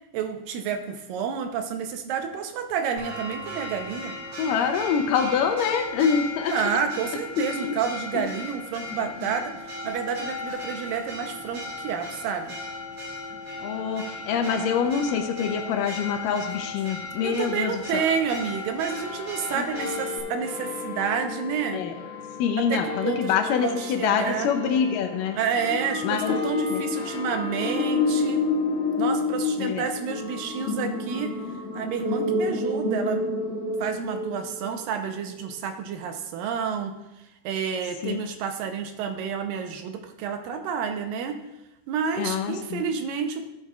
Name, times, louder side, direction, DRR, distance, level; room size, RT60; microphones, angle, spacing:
voice 1, 0.1-4.2 6.5-9.6 9.8-12.6 17.2-21.8 22.6-24.5 25.3-28.5 29.0-31.4 31.7-33.2 33.8-36.9 37.4-41.4 41.9-43.5, right 7 dB, 80° right, 6 dB, 2.4 m, -29 dB
Church bell, 3.0-20.2, left 2 dB, 45° right, 3.3 m, -37 dB
voice 2, 4.4-6.5 7.4-7.8 8.1-8.3 13.6-18.0 19.5-19.6 21.7-21.9 22.4-25.4 26.0-26.3 26.7-26.8 29.6-29.8 38.0-38.2 42.2-42.8, left 7 dB, 75° left, 6 dB, 2.2 m, -25 dB
sound 1, 17.8-34.6, left 5 dB, 50° left, 3.0 m, -39 dB
sound 2, 25.6-34.9, left 3 dB, 30° left, 1.3 m, -28 dB
15.0 x 8.3 x 2.4 m, 0.94 s
omnidirectional pair, 4.1 m